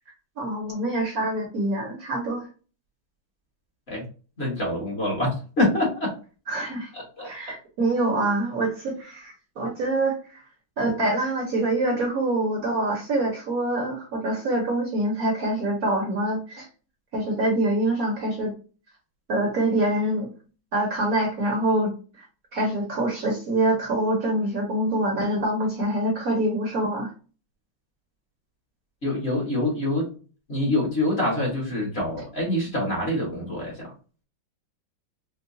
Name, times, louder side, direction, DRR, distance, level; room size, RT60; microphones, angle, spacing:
voice 1, 0.4-2.5 6.5-6.9 7.2-10.4 10.8-16.7 17.1-18.5 19.3-20.3 20.7-22.3 22.5-27.1, right 1 dB, 55° right, 0 dB, 1.2 m, -25 dB
voice 2, 4.4-6.1 6.9-7.3 29.0-30.1 30.5-33.9, left 1 dB, 35° left, -3 dB, 1.4 m, -25 dB
4.7 x 2.2 x 2.5 m, 0.36 s
omnidirectional pair, 2.1 m